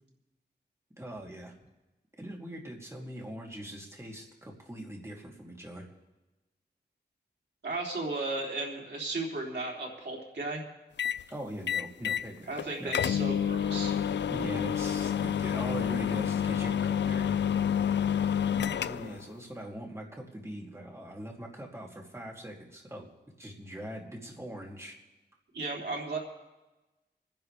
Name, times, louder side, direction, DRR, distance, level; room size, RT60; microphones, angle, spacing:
voice 1, 1.0-1.5 2.2-5.9 11.3-13.0 14.3-17.4 18.5-23.1 23.4-24.9, right 1 dB, 15° right, -1 dB, 2.7 m, -41 dB
voice 2, 7.6-10.6 12.5-14.0 25.5-26.2, right 2 dB, 75° right, -2 dB, 3.3 m, -35 dB
sound 1, 11.0-11.2 11.7-12.3 12.6-12.7 12.9-19.2, left 8 dB, 85° left, 0.4 m, -29 dB
27.5 x 10.5 x 3.4 m, 1.1 s
wide cardioid pair, 100°, 18 cm